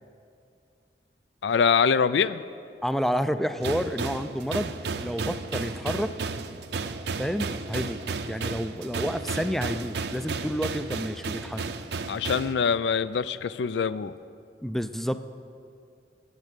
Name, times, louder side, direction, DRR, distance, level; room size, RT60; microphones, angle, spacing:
voice 1, 1.4-2.4 12.1-14.1, left 6 dB, 85° left, 16 dB, 0.4 m, -24 dB
voice 2, 2.8-4.7 5.0-6.1 7.2-8.0 8.3-11.6 14.6-15.2, equal, ahead, 10 dB, 0.3 m, -29 dB
sound 1, 3.6-12.5, right 4 dB, 70° right, 0.6 m, -33 dB
13.5 x 8.8 x 6.7 m, 2.4 s
head